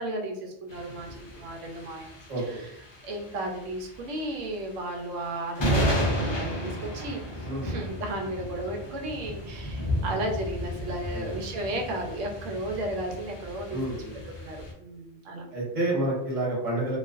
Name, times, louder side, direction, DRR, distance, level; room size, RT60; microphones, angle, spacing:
voice 1, 0.0-2.1 3.0-13.8 14.4-15.4, right 1 dB, 80° right, 2 dB, 0.9 m, -34 dB
sound 1, 0.7-14.7, equal, 45° left, 0.3 m, -33 dB
voice 2, 2.3-2.6 7.4-7.8 11.1-11.4 13.7-14.2 15.5-17.0, right 1 dB, 35° right, -5 dB, 0.9 m, -29 dB
2.4 x 2.2 x 2.4 m, 0.81 s
omnidirectional pair, 1.3 m